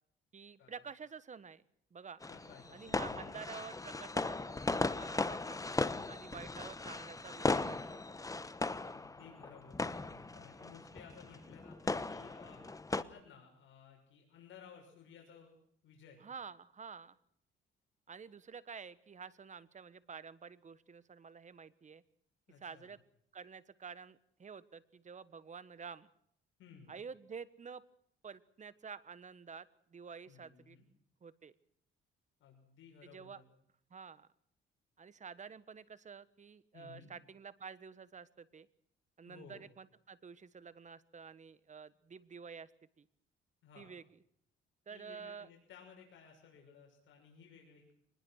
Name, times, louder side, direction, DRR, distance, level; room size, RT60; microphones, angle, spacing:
voice 1, 0.3-1.6 1.9-2.2 2.7-5.6 6.1-8.0 16.2-17.2 18.1-22.0 22.6-23.0 23.3-26.1 26.9-27.8 28.2-30.8 31.2-31.5 33.0-33.4 33.9-34.3 35.0-38.7 39.2-42.7 43.0-43.1 43.8-44.0 44.9-45.5, right 6 dB, 40° right, 16 dB, 1.4 m, -50 dB
sound 1, 2.2-13.0, left 3 dB, 15° left, 1.1 m, -37 dB
voice 2, 2.3-3.3 8.8-15.6 15.8-16.2 22.5-22.9 26.6-26.9 30.3-30.9 32.4-33.4 36.7-37.1 39.2-39.7 43.6-43.9 44.9-47.9, left 6 dB, 75° left, 1 dB, 6.4 m, -57 dB
24.5 x 20.5 x 6.5 m, 0.68 s
cardioid pair, 90°, 20 cm